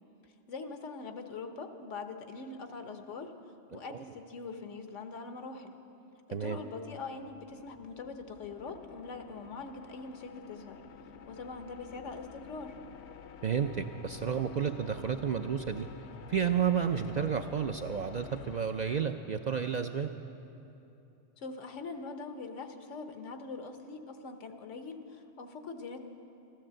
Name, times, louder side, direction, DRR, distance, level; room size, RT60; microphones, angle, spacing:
voice 1, 0.5-3.3 3.7-5.7 6.3-10.8 11.3-12.8 21.4-26.1, left 4 dB, 85° left, 7 dB, 1.3 m, -43 dB
voice 2, 3.7-4.0 6.3-6.6 13.4-15.9 16.3-20.1, right 7 dB, 60° right, 6 dB, 0.4 m, -31 dB
sound 1, 7.1-19.9, left 7 dB, 70° left, 0.9 m, -51 dB
14.5 x 12.5 x 7.6 m, 2.9 s
omnidirectional pair, 1.2 m